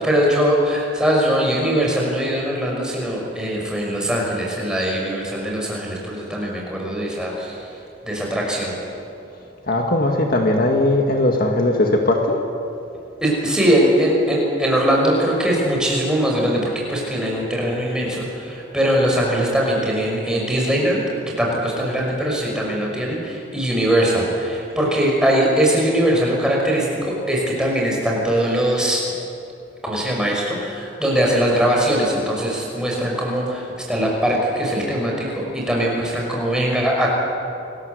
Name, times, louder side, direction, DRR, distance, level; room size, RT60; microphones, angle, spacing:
voice 1, 0.0-7.6 8.0-8.7 13.2-29.0 29.8-33.6 33.9-37.1, right 1 dB, 5° right, -2 dB, 6.0 m, -21 dB
voice 2, 9.7-12.4, left 1 dB, 45° left, 1 dB, 2.0 m, -18 dB
28.0 x 20.5 x 8.1 m, 2.6 s
head